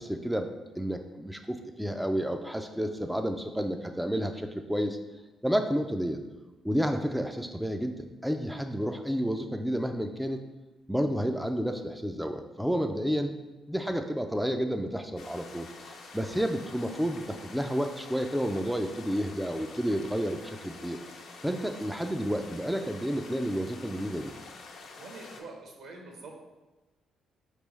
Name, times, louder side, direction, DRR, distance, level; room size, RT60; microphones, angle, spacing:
voice 1, 0.0-5.0 5.4-6.2 6.6-10.4 10.9-13.3 13.7-15.7 16.1-21.0 21.4-24.3, equal, ahead, 5 dB, 0.3 m, -30 dB
sound 1, 15.2-25.4, left 4 dB, 75° left, 0.6 m, -47 dB
voice 2, 25.0-26.4, right 3 dB, 75° right, 1 dB, 1.0 m, -45 dB
5.0 x 3.4 x 3.1 m, 1.1 s
cardioid pair, 90°, 0 cm